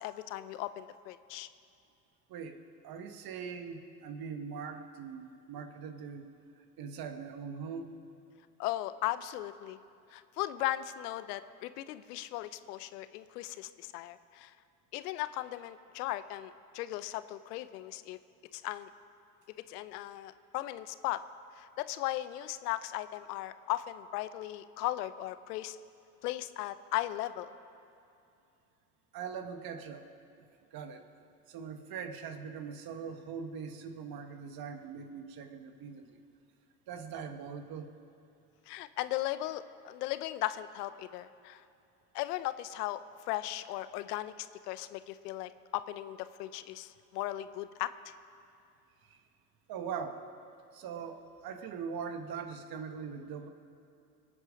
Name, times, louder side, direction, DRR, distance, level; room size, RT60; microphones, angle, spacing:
voice 1, 0.0-1.5 8.6-9.8 10.1-14.5 14.9-18.2 18.5-18.9 19.7-21.2 21.6-25.8 26.2-27.5 38.7-41.6 42.1-43.0 43.3-48.1, left 15 dB, 70° left, 14 dB, 0.8 m, -37 dB
voice 2, 2.8-6.3 6.6-8.0 29.1-30.1 30.4-30.5 30.7-31.0 31.5-36.2 36.9-37.9 49.0-49.2 49.7-50.2 50.7-53.5, right 6 dB, 45° right, 7 dB, 1.5 m, -41 dB
24.5 x 8.9 x 5.1 m, 2.6 s
hypercardioid pair, 75°, 48 cm